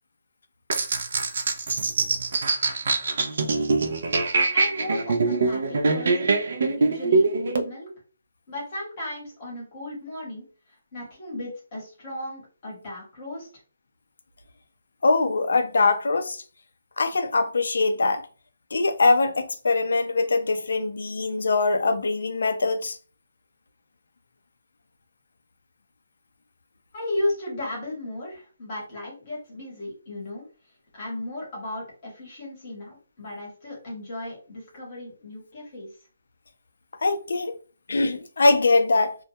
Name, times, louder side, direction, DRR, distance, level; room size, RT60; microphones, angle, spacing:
sound 1, 0.7-7.6, right 3 dB, 45° right, 0.3 m, -23 dB
voice 1, 4.5-6.3 6.7-7.9 8.5-10.5 10.9-13.5 26.9-30.5 30.9-35.9, left 1 dB, 25° left, 1.0 m, -35 dB
voice 2, 15.0-16.4 17.0-18.3 18.7-23.0 37.0-37.5 37.9-39.2, left 3 dB, 65° left, 0.4 m, -22 dB
2.2 x 2.1 x 2.7 m
hypercardioid pair, 175°, 0 cm